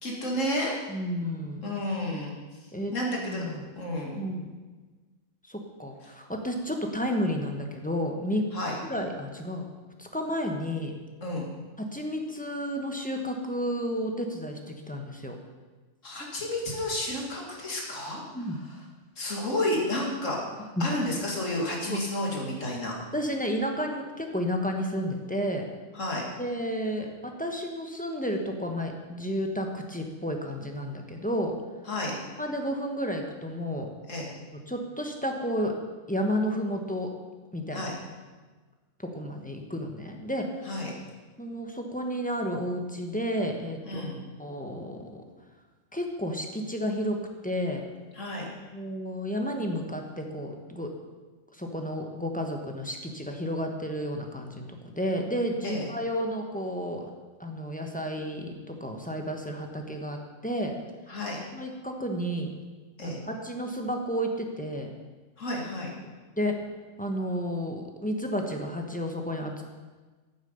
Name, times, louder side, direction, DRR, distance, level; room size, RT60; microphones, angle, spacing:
voice 1, 0.0-0.7 1.6-2.3 2.9-4.2 8.5-8.8 11.2-11.5 16.0-18.2 19.2-20.4 20.8-22.9 25.9-26.2 31.9-32.2 34.1-34.3 37.7-37.9 40.6-40.9 43.8-44.2 48.1-48.5 55.6-55.9 61.1-61.4 63.0-63.2 65.4-65.9, left 1 dB, 70° left, -2 dB, 2.6 m, -31 dB
voice 2, 0.9-1.7 2.7-3.6 4.2-4.5 5.5-8.5 8.8-9.7 10.0-10.9 11.8-15.4 18.3-18.6 20.8-20.9 21.9-22.0 23.1-25.7 26.4-31.6 32.4-33.9 34.7-35.7 36.1-37.1 37.5-37.8 39.0-40.5 41.4-45.1 45.9-47.8 48.7-50.9 51.5-54.7 55.0-57.1 57.4-60.7 61.5-62.5 63.0-64.9 66.0-66.6 67.0-69.6, equal, 5° left, 2 dB, 1.1 m, -31 dB
9.2 x 8.2 x 7.0 m, 1.3 s
omnidirectional pair, 1.4 m